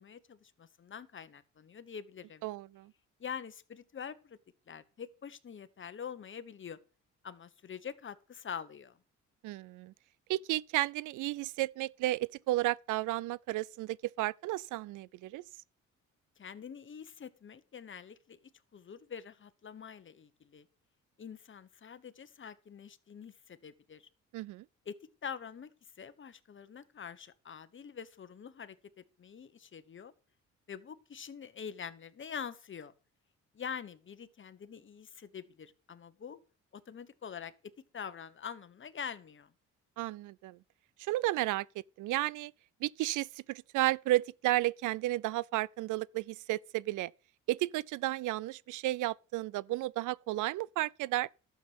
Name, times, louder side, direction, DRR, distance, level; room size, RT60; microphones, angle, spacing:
voice 1, 0.0-2.4 3.2-4.4 4.7-6.8 7.2-9.0 16.4-18.4 18.7-20.6 21.2-24.1 24.8-24.9 25.2-25.7 26.0-30.1 30.7-32.9 33.5-36.4 36.7-37.5 37.9-39.5, left 7 dB, 40° left, 1.2 m, -45 dB
voice 2, 2.4-2.9 9.4-9.9 10.3-15.4 24.3-24.6 40.0-40.6 41.0-41.7 42.0-42.5 42.8-47.1 47.5-51.3, right 17 dB, 80° right, 0.5 m, -33 dB
12.0 x 7.4 x 6.1 m
cardioid pair, 90°, 30 cm